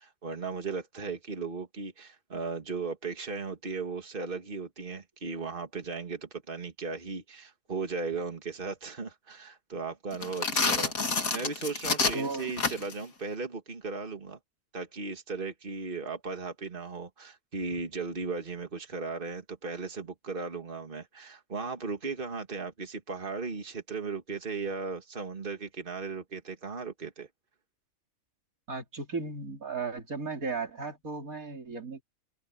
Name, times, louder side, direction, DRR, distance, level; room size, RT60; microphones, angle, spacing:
voice 1, 0.0-10.9 11.3-14.4 14.7-27.3, right 4 dB, 40° right, 2.3 m, -36 dB
sound 1, 10.1-13.0, left 4 dB, 85° left, 2.7 m, -28 dB
voice 2, 12.1-12.5 28.7-32.0, right 4 dB, 80° right, 3.6 m, -35 dB
omnidirectional pair, 1.4 m